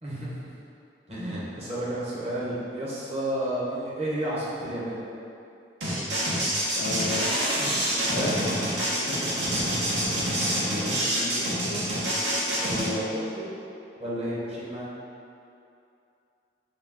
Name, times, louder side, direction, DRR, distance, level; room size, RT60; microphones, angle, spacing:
voice 1, 0.0-0.5 1.1-5.0 7.9-8.5 10.6-11.9 12.6-13.5 14.0-14.8, right 1 dB, 40° right, -8 dB, 1.0 m, -32 dB
sound 1, 5.8-12.9, equal, 75° right, 0.9 m, -26 dB
voice 2, 6.7-7.3 7.6-7.8 8.1-8.3 9.0-9.3, left 4 dB, 65° left, 1 dB, 0.3 m, -34 dB
4.2 x 2.3 x 3.6 m, 2.6 s
head